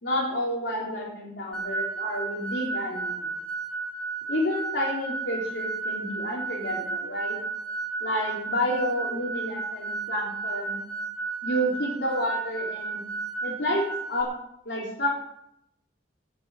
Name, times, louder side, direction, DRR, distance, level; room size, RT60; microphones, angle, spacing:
voice 1, 0.0-3.3 4.3-7.4 8.0-10.8 11.4-13.0 13.4-14.3 14.6-15.1, equal, 70° left, -3 dB, 3.5 m, -30 dB
sound 1, 1.5-14.2, right 4 dB, 5° left, 1.9 m, -33 dB
17.5 x 6.6 x 6.3 m, 0.76 s
head